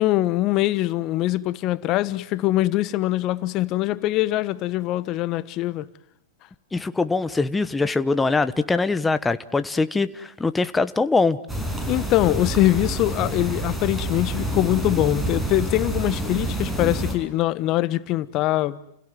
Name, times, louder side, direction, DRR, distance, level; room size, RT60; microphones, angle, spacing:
voice 1, 0.0-5.9 11.9-18.8, left 16 dB, 40° left, 1.2 m, -23 dB
voice 2, 6.7-11.4, left 3 dB, 10° left, 1.1 m, -22 dB
sound 1, 11.5-17.1, right 1 dB, 10° right, 6.5 m, -28 dB
29.5 x 17.0 x 9.3 m
hypercardioid pair, 120°, 0 cm